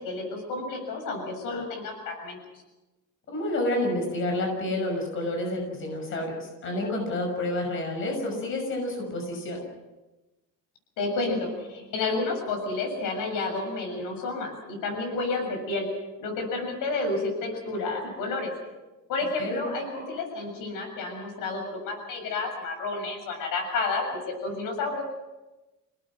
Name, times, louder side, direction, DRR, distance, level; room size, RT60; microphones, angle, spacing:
voice 1, 0.0-2.4 11.0-15.9 16.2-18.5 19.1-25.0, left 3 dB, 85° left, 3 dB, 7.1 m, -30 dB
voice 2, 3.3-9.7 19.4-19.6, left 1 dB, 40° left, 2 dB, 6.2 m, -29 dB
28.0 x 18.5 x 6.3 m, 1.1 s
cardioid pair, 175°, 32 cm